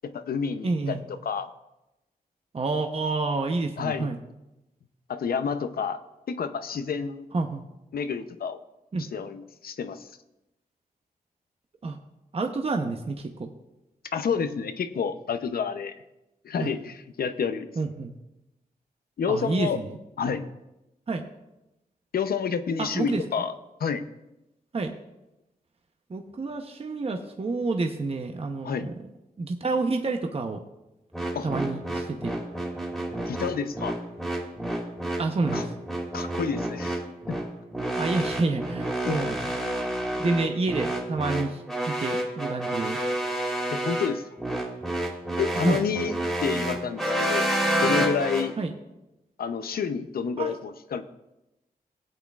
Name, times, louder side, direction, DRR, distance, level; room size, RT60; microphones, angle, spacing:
voice 1, 0.0-1.5 3.8-4.1 5.1-6.0 6.3-7.3 7.9-8.6 9.0-10.1 14.1-15.9 16.4-17.7 19.2-19.8 20.2-20.5 22.1-23.5 23.8-24.0 28.6-28.9 31.3-31.5 33.3-34.0 35.5-35.7 36.1-37.0 37.3-37.4 39.0-39.2 43.7-44.2 45.4-46.1 46.4-47.5 47.8-48.5 49.4-51.0, left 6 dB, 75° left, 10 dB, 0.7 m, -29 dB
voice 2, 0.6-1.0 2.5-4.2 7.3-7.6 8.9-9.1 11.8-12.0 12.3-13.5 16.6-16.7 17.8-18.1 19.3-20.0 21.1-21.2 22.8-23.2 24.7-24.9 26.1-28.9 29.4-30.6 31.4-32.4 35.2-35.7 38.0-39.5 40.2-43.0 45.5-45.8 48.6-48.7 50.4-50.6, right 3 dB, 40° right, 4 dB, 0.8 m, -28 dB
sound 1, 31.1-48.5, right 1 dB, ahead, 2.5 m, -29 dB
18.5 x 8.3 x 2.4 m, 0.94 s
cardioid pair, 75°, 16 cm